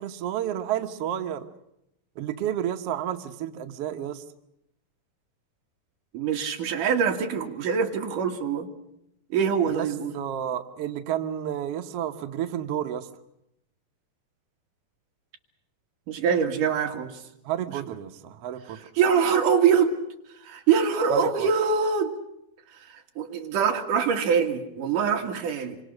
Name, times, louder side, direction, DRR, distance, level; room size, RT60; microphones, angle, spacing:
voice 1, 0.0-1.5 2.2-4.2 9.7-9.9 10.1-13.1 17.4-18.8 21.1-21.5, right 10 dB, 85° right, 7 dB, 1.3 m, -31 dB
voice 2, 6.1-8.7 9.3-10.1 16.1-17.2 18.9-20.0 20.4-22.1 22.9-25.8, right 6 dB, 60° right, 3 dB, 3.3 m, -24 dB
27.0 x 24.5 x 6.5 m, 0.81 s
omnidirectional pair, 4.4 m